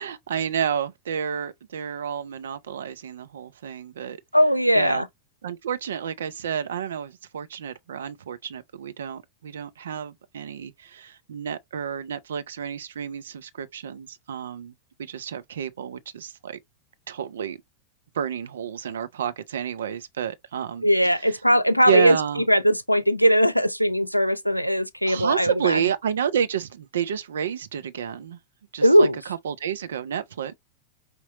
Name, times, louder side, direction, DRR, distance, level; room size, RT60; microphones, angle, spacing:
voice 1, 0.0-4.2 4.7-5.0 5.4-14.7 15.0-16.6 17.1-17.6 18.1-20.9 21.9-22.4 25.0-28.4 28.7-29.1 29.4-30.5, right 8 dB, 65° right, 0.6 m, -30 dB
voice 2, 4.3-5.1 20.8-22.2 22.5-25.8 28.8-29.2, equal, 90° left, 0.4 m, -19 dB
5.2 x 2.9 x 2.8 m
figure-of-eight pair, 90°, 0 cm